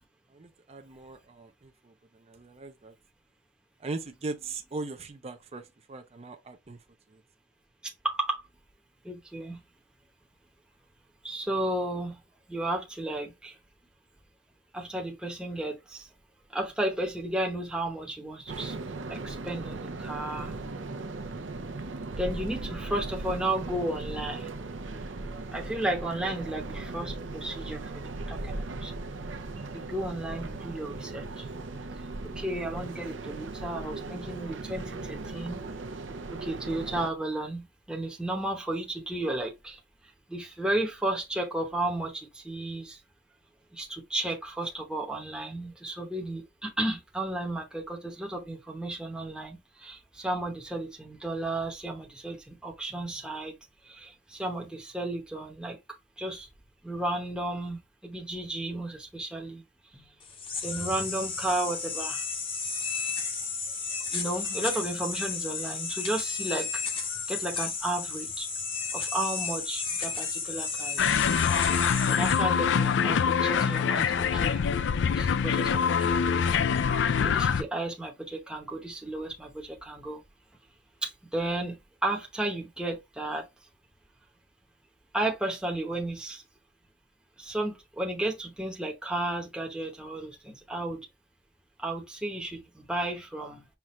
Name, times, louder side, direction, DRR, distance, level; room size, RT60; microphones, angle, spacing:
voice 1, 0.3-2.9 3.8-6.8 7.1-7.2, right 3 dB, 35° right, 0.5 m, -40 dB
voice 2, 7.8-8.4 9.0-9.6 11.2-12.2 12.5-13.6 14.7-16.1 16.5-18.8 19.1-20.9 22.2-24.6 25.5-28.9 29.7-31.5 32.2-35.6 36.3-43.0 43.7-53.5 53.8-55.8 56.2-56.5 56.8-59.6 59.9-60.1 60.6-62.3 64.1-68.5 68.9-71.3 72.1-74.7 75.1-76.4 77.1-80.2 81.0-83.5 85.1-86.4 87.4-91.1 91.8-93.7, right 1 dB, 5° right, 0.8 m, -33 dB
sound 1, 18.5-37.1, right 2 dB, 75° right, 0.7 m, -38 dB
sound 2, 60.2-73.0, left 5 dB, 30° left, 0.8 m, -33 dB
sound 3, 71.0-77.6, left 7 dB, 65° left, 0.4 m, -25 dB
5.8 x 2.4 x 3.1 m
head